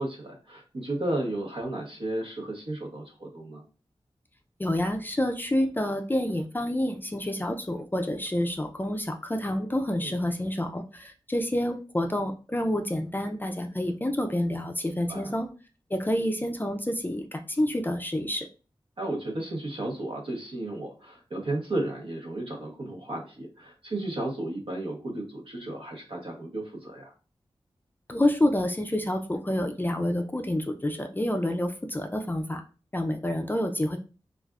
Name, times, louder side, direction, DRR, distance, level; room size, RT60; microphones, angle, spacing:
voice 1, 0.0-3.6 10.0-10.2 15.1-15.3 19.0-27.1, right 1 dB, 65° right, 0 dB, 0.9 m, -33 dB
voice 2, 4.6-15.5 15.9-18.5 28.1-32.6 32.9-34.0, left 1 dB, 20° left, 5 dB, 0.4 m, -28 dB
3.3 x 2.4 x 2.3 m, 0.34 s
wide cardioid pair, 70°, 10 cm